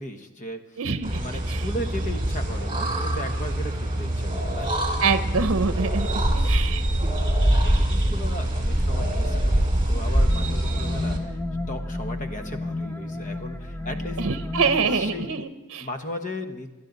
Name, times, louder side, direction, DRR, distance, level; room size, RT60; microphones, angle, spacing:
voice 1, 0.0-0.8 1.1-4.8 6.3-6.6 7.5-11.4 11.7-14.2 14.6-15.3 15.8-16.7, left 1 dB, 35° left, 6 dB, 1.1 m, -36 dB
voice 2, 0.8-1.2 1.5-1.6 5.0-6.1 6.4-6.8 14.2-15.9, right 5 dB, 60° right, 10 dB, 0.8 m, -25 dB
sound 1, 1.0-11.2, right 1 dB, 25° right, 2.3 m, -24 dB
sound 2, 10.1-15.4, left 2 dB, 10° left, 0.5 m, -32 dB
21.0 x 12.0 x 4.0 m, 1.1 s
head